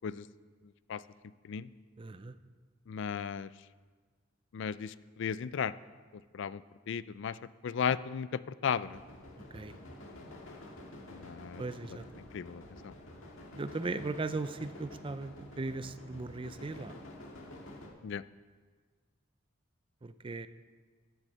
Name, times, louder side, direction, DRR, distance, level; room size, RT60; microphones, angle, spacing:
voice 1, 2.0-2.3 9.5-9.7 11.6-12.0 13.5-16.9 20.0-20.5, right 3 dB, 25° right, 12 dB, 0.4 m, -38 dB
voice 2, 2.9-3.5 4.5-5.7 6.3-6.6 6.9-7.4 7.6-9.0 11.1-11.6 12.3-12.9 18.0-18.2, left 7 dB, 65° left, 17 dB, 0.4 m, -35 dB
sound 1, 8.8-17.9, left 1 dB, 85° left, 1.7 m, -49 dB
12.0 x 6.3 x 7.4 m, 1.5 s
head